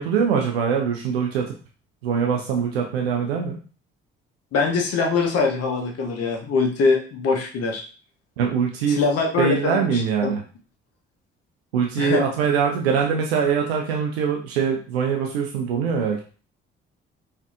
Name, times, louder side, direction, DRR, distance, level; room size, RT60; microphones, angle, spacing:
voice 1, 0.0-1.6 2.0-3.6 8.4-9.0 9.4-10.4 11.7-16.2, right 6 dB, 90° right, 1 dB, 0.5 m, -23 dB
voice 2, 4.5-7.8 9.0-10.3 12.0-12.2, left 4 dB, 55° left, 2 dB, 0.9 m, -23 dB
4.3 x 2.6 x 2.4 m, 0.37 s
hypercardioid pair, 45°, 30 cm